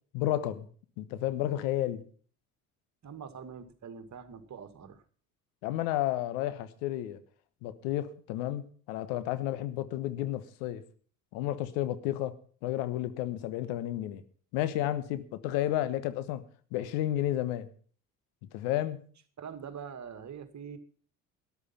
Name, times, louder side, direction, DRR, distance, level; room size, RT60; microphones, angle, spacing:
voice 1, 0.1-0.7 1.0-2.0 5.6-7.2 7.6-10.8 11.3-12.3 12.6-14.2 14.5-16.4 16.7-17.7 18.5-19.0, left 13 dB, 70° left, 13 dB, 1.3 m, -31 dB
voice 2, 3.0-5.0 19.4-20.8, right 7 dB, 40° right, 10 dB, 2.1 m, -44 dB
13.0 x 11.5 x 5.6 m, 0.44 s
hypercardioid pair, 60°, 42 cm